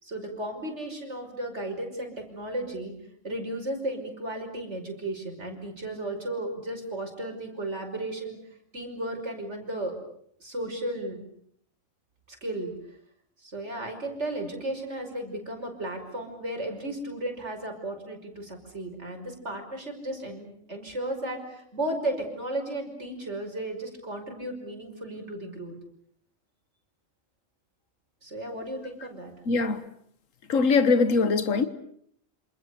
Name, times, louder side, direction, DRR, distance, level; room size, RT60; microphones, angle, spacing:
voice 1, 0.0-2.9 3.2-8.4 8.7-9.9 10.4-11.2 12.3-12.7 13.4-25.7 28.2-29.3, right 1 dB, 60° right, 5.9 m, -34 dB
voice 2, 29.5-29.8 30.5-31.7, left 4 dB, 80° left, 1.8 m, -22 dB
28.0 x 27.0 x 7.0 m
omnidirectional pair, 1.3 m